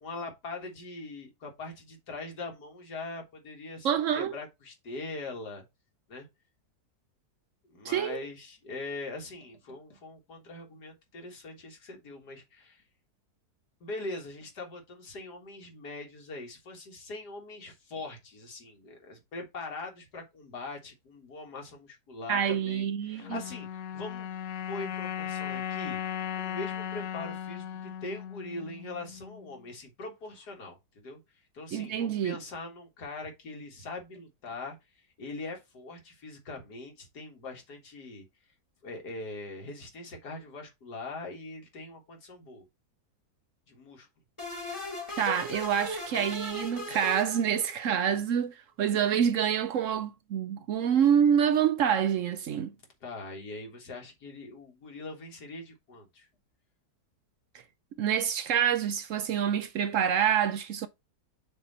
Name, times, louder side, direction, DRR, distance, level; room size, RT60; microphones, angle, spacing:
voice 1, 0.0-3.9 4.2-5.6 6.1-6.3 7.6-12.8 13.8-24.3 24.7-26.0 26.4-31.2 31.5-34.8 35.2-38.3 38.8-42.7 43.7-44.1 53.0-56.3, left 2 dB, 90° left, 2.2 m, -42 dB
voice 2, 3.8-4.4 7.8-8.2 22.3-23.4 31.7-32.4 45.2-52.7 58.0-60.9, right 8 dB, 65° right, 0.8 m, -27 dB
sound 1, 23.2-29.6, left 9 dB, 70° left, 1.1 m, -37 dB
sound 2, 44.4-48.0, equal, 20° left, 1.4 m, -38 dB
6.6 x 2.9 x 5.4 m
omnidirectional pair, 1.7 m